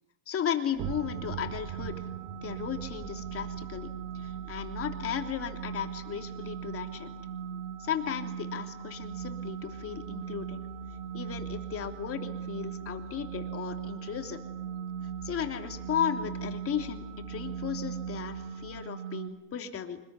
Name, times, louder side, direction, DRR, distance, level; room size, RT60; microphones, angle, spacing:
voice 1, 0.3-2.1 2.4-7.1 7.8-10.6 11.1-14.4 15.2-20.0, left 8 dB, 30° left, 5 dB, 3.1 m, -35 dB
sound 1, 0.7-6.3, right 14 dB, 40° right, 0.9 m, -44 dB
sound 2, 0.8-18.8, right 5 dB, 20° right, 4.2 m, -50 dB
sound 3, 0.8-19.3, right 7 dB, 85° right, 5.6 m, -39 dB
25.5 x 20.5 x 9.7 m, 1.0 s
supercardioid pair, 125°, 45 cm